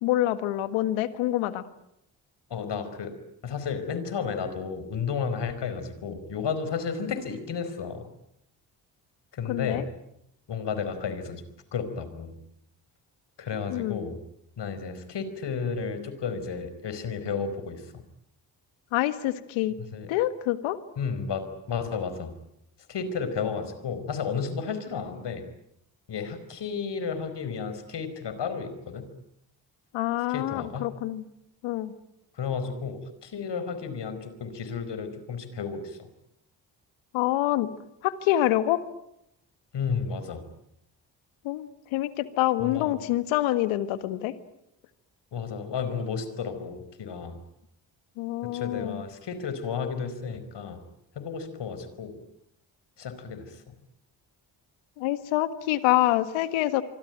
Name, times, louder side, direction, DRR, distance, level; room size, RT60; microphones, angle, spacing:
voice 1, 0.0-1.6 9.5-9.8 13.7-14.0 18.9-19.8 20.1-20.8 29.9-31.3 31.6-31.9 37.1-37.7 38.0-38.8 41.4-44.3 48.2-49.0 55.0-56.8, left 14 dB, 80° left, 13 dB, 1.7 m, -26 dB
voice 2, 2.5-3.1 3.4-8.1 9.3-9.8 10.5-11.4 11.7-12.3 13.4-14.2 14.6-18.0 19.9-20.1 21.0-22.3 22.9-25.4 26.1-29.0 30.3-30.9 32.3-36.1 39.7-40.4 42.6-43.0 45.3-47.4 48.5-50.8 51.1-52.2 53.0-53.6, left 6 dB, 60° left, 11 dB, 4.9 m, -32 dB
25.5 x 24.5 x 9.2 m, 0.78 s
hypercardioid pair, 45°, 47 cm